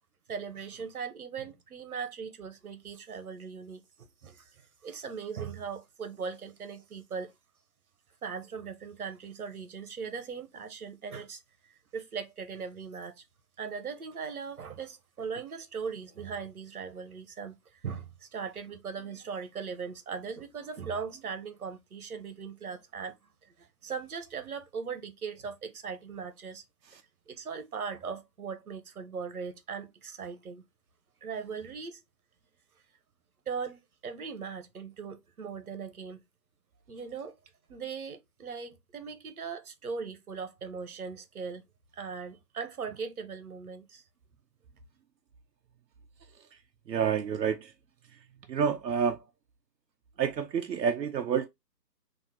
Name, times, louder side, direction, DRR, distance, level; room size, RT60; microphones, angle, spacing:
voice 1, 0.3-7.3 8.2-13.2 13.6-23.2 23.4-26.6 27.3-30.6 31.2-32.0 33.5-36.2 36.9-37.3 37.7-41.6 41.9-44.0, right 6 dB, 60° right, 1.1 m, -39 dB
voice 2, 46.9-47.7 48.5-49.2 50.2-51.5, right 7 dB, 80° right, 0.7 m, -28 dB
3.7 x 2.8 x 4.2 m
hypercardioid pair, 160°, 49 cm